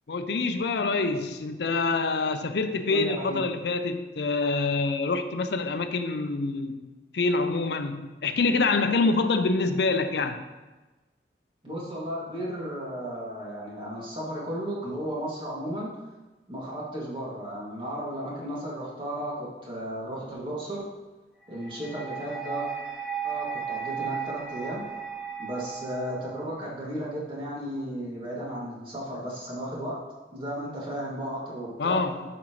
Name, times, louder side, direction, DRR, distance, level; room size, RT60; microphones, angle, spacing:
voice 1, 0.1-6.9 7.1-10.4 31.8-32.2, left 3 dB, 75° left, 8 dB, 0.5 m, -26 dB
voice 2, 2.9-3.4 11.6-15.9 16.5-20.8 21.5-22.7 23.2-24.8 25.4-30.0 30.3-32.0, equal, 30° right, -6 dB, 2.4 m, -34 dB
sound 1, 21.5-26.6, right 7 dB, 5° right, 0.6 m, -35 dB
11.0 x 6.1 x 3.2 m, 1.2 s
head